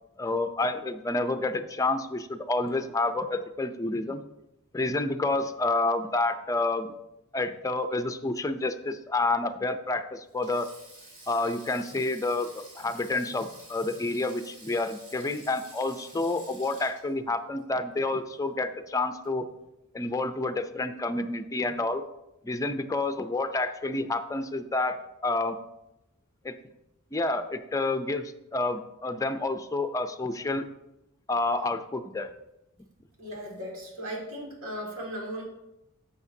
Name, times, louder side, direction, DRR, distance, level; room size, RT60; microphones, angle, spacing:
voice 1, 0.2-4.2 4.7-6.9 7.3-10.7 11.3-19.5 19.9-22.0 22.4-25.6 26.4-26.5 27.1-30.7 31.3-32.3, left 2 dB, 15° left, 9 dB, 0.4 m, -29 dB
Sink (filling or washing), 10.3-18.7 19.0-19.3 20.4-20.7, right 2 dB, 40° right, 3.3 m, -51 dB
voice 2, 33.2-35.4, equal, 65° right, -2 dB, 2.2 m, -37 dB
11.0 x 7.1 x 2.7 m, 0.91 s
head